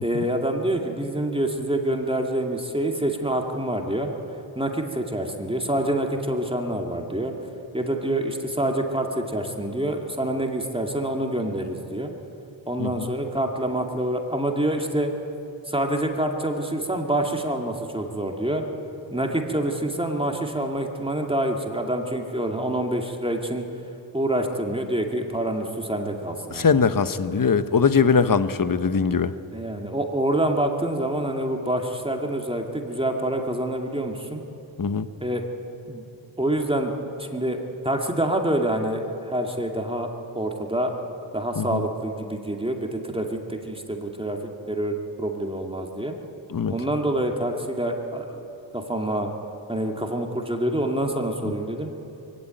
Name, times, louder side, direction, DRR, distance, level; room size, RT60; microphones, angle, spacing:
voice 1, 0.0-4.1 4.6-7.3 7.7-12.1 12.7-15.1 15.7-18.6 19.1-23.6 24.1-26.8 29.5-34.4 35.2-35.4 35.9-36.0 36.4-36.9 37.2-37.6 37.8-40.1 40.3-41.0 41.3-44.4 44.7-46.1 46.7-48.4 48.7-49.3 49.7-51.9, right 1 dB, 10° right, 2 dB, 2.2 m, -26 dB
voice 2, 26.6-29.3 34.8-35.1 41.6-41.8 46.5-46.7, left 5 dB, 45° left, 12 dB, 1.0 m, -21 dB
22.0 x 17.0 x 9.1 m, 2.9 s
wide cardioid pair, 75°, 47 cm